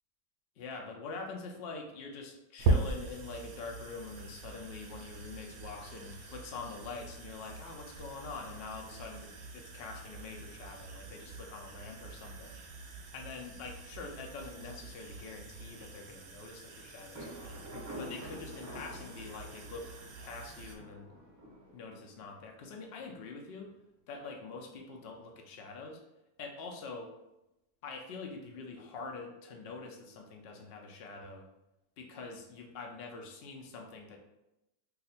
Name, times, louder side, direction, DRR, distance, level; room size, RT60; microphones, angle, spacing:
voice 1, 0.6-12.6 13.1-17.6 18.0-19.9 20.2-21.1 21.7-23.7 24.1-26.0 26.4-27.1 27.8-31.4 32.0-34.2, left 4 dB, 90° left, 1 dB, 0.5 m, -45 dB
sound 1, 2.6-20.8, right 2 dB, 65° right, 0.6 m, -40 dB
Thunder, 17.1-22.8, equal, 25° right, 0.4 m, -48 dB
2.7 x 2.4 x 4.1 m, 0.91 s
omnidirectional pair, 1.7 m